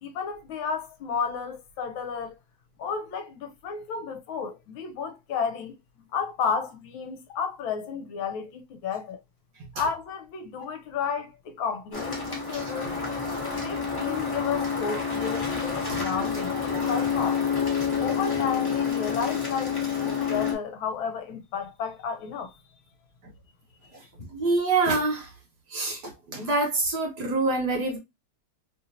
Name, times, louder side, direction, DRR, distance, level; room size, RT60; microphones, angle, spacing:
voice 1, 0.0-2.4 2.8-5.7 6.1-9.2 9.8-13.0 13.5-17.4 18.0-22.5, left 6 dB, 75° left, 1.4 m, -32 dB
sound 1, 11.9-20.5, left 6 dB, 15° left, 0.9 m, -28 dB
voice 2, 15.9-16.3 23.9-24.0 24.3-25.3 25.7-28.0, right 3 dB, 60° right, 1.4 m, -26 dB
3.4 x 2.7 x 2.5 m
omnidirectional pair, 2.3 m